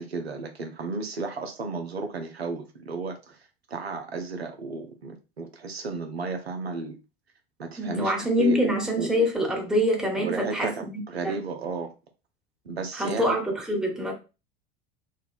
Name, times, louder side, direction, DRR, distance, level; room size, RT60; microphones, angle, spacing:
voice 1, 0.0-7.0 7.6-9.1 10.2-11.9 12.6-13.4, right 3 dB, 85° right, 0.6 m, -34 dB
voice 2, 7.8-11.4 12.9-14.1, equal, ahead, 1.0 m, -25 dB
4.0 x 2.2 x 2.4 m
figure-of-eight pair, 80°, 31 cm